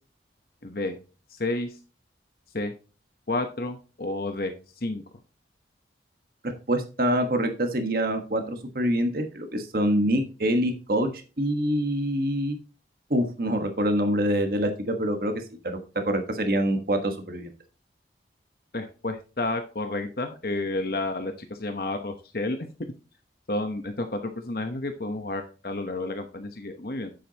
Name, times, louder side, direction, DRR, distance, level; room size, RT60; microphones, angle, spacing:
voice 1, 0.6-1.0 1.3-1.8 2.5-2.7 3.3-5.0 18.7-22.7 23.5-27.1, left 2 dB, 55° left, 6 dB, 1.0 m, -31 dB
voice 2, 6.7-11.1 11.4-12.6 13.1-15.8 16.0-17.5, equal, 55° right, 5 dB, 1.4 m, -25 dB
9.6 x 7.8 x 2.9 m, 0.33 s
head